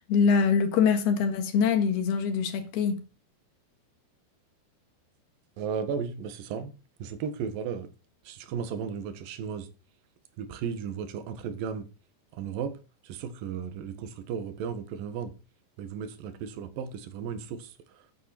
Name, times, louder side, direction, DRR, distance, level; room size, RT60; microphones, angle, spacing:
voice 1, 0.1-3.0, left 6 dB, 70° left, 3.4 m, -24 dB
voice 2, 5.6-6.7 7.0-7.9 8.2-9.7 10.4-11.9 12.3-12.8 13.0-15.3 15.8-18.1, right 7 dB, 65° right, 2.8 m, -35 dB
9.2 x 8.5 x 5.8 m
omnidirectional pair, 5.0 m